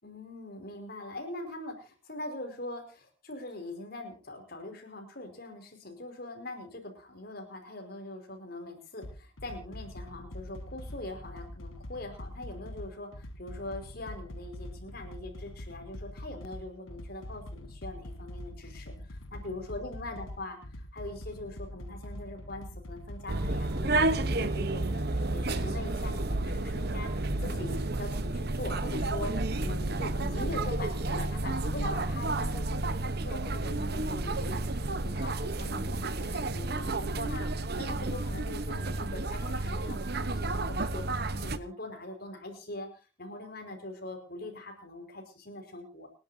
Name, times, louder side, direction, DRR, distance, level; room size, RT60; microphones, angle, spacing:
voice 1, 0.0-20.6 20.9-25.0 25.3-29.3 29.6-42.9 43.2-46.1, left 2 dB, 50° left, 5 dB, 5.0 m, -42 dB
sound 1, 9.0-24.0, left 1 dB, 85° left, 1.4 m, -44 dB
sound 2, 23.3-41.6, right 2 dB, 50° right, 1.0 m, -31 dB
29.5 x 11.5 x 2.8 m, 0.33 s
head